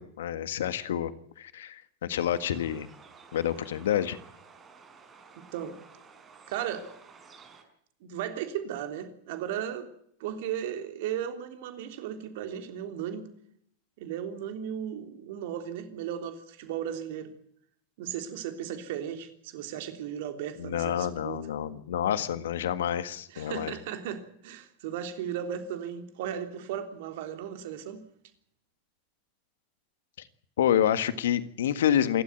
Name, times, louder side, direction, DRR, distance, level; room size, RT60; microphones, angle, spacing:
voice 1, 0.0-2.9 3.3-4.2 20.6-23.7 30.6-32.2, left 10 dB, 75° left, 1.6 m, -28 dB
sound 1, 2.2-7.6, right 5 dB, 25° right, 5.6 m, -53 dB
voice 2, 5.4-5.8 6.5-6.9 8.0-9.9 10.2-13.3 14.0-17.3 18.0-21.5 23.3-28.0, right 9 dB, 65° right, 3.3 m, -36 dB
27.5 x 12.5 x 9.4 m
hypercardioid pair, 90°, 0 cm